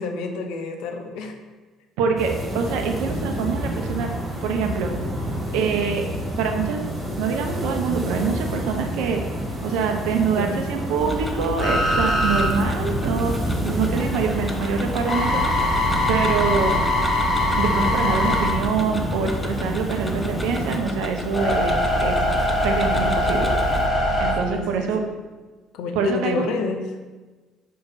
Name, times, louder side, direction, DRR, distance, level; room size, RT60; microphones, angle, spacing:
voice 1, 0.0-1.4 10.4-10.5 12.4-12.5 24.4-25.1 25.7-26.8, left 5 dB, 65° left, 5 dB, 0.7 m, -29 dB
voice 2, 2.0-4.1 4.4-4.9 5.5-6.1 6.4-6.8 7.2-9.2 9.6-13.4 13.6-15.4 16.1-16.8 17.6-22.2 22.6-23.5 24.2-25.0 26.0-26.5, right 6 dB, 65° right, 4 dB, 0.7 m, -25 dB
sound 1, 2.2-20.8, equal, 25° right, 2.1 m, -29 dB
Tick-tock, 11.0-23.9, left 2 dB, 10° left, 0.8 m, -33 dB
sound 2, 11.6-13.5 14.0-19.6 20.1-24.3, left 1 dB, 35° left, 1.9 m, -22 dB
5.6 x 5.1 x 4.1 m, 1.3 s
figure-of-eight pair, 50°, 0 cm